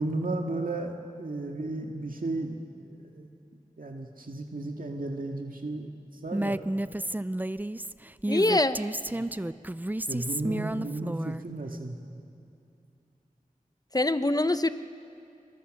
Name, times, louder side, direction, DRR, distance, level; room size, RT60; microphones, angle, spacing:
voice 1, 0.0-3.3 3.8-5.9 6.2-6.6 9.0-9.3 10.1-12.0, right 2 dB, 75° right, 2 dB, 1.9 m, -34 dB
Female speech woman speaking, 6.3-11.4, right 1 dB, 10° right, 0.5 m, -31 dB
voice 2, 8.3-8.8 13.9-14.7, left 2 dB, 25° left, 11 dB, 0.9 m, -24 dB
24.5 x 23.0 x 6.6 m, 2.6 s
wide cardioid pair, 40°, 15 cm